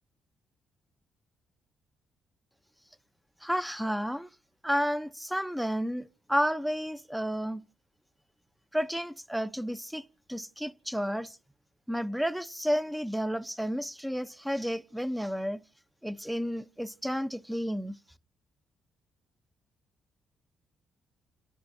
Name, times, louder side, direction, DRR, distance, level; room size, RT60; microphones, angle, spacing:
voice 1, 3.4-4.3 4.6-7.6 8.7-10.0 10.3-11.4 11.9-15.6 16.0-18.0, equal, 5° right, 0.8 m, -31 dB
30.0 x 11.0 x 2.8 m
cardioid pair, 90°, 0 cm